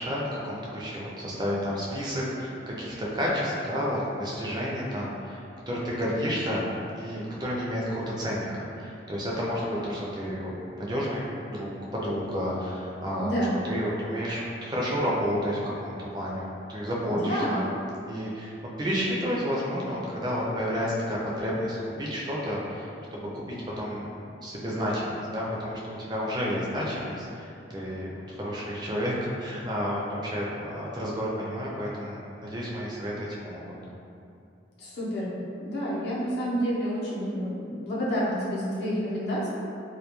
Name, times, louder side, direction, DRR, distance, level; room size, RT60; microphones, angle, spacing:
voice 1, 0.0-6.7 6.9-13.3 13.6-17.7 18.1-24.1 24.4-29.1 29.4-33.8, equal, 25° right, -5 dB, 0.4 m, -31 dB
voice 2, 13.2-13.6 17.1-17.6 34.8-35.3 35.6-39.5, equal, 65° left, -8 dB, 0.7 m, -29 dB
2.2 x 2.2 x 2.9 m, 2.5 s
head